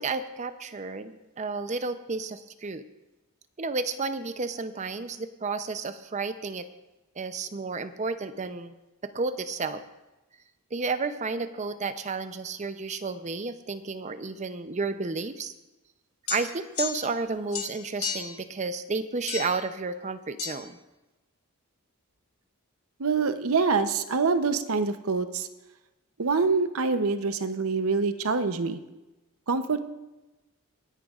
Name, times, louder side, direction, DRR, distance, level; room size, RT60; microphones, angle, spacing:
voice 1, 0.0-2.8 3.6-6.7 7.2-8.7 9.0-9.8 10.7-15.5 16.3-20.8, right 4 dB, 30° right, 10 dB, 0.5 m, -32 dB
sound 1, 16.3-17.2 17.5-18.4 19.3-19.7 20.4-20.6, left 7 dB, 80° left, 1.5 m, -34 dB
voice 2, 23.0-25.5 26.2-28.8 29.5-29.8, right 4 dB, 70° right, 10 dB, 0.7 m, -25 dB
26.0 x 10.0 x 2.4 m, 1.1 s
head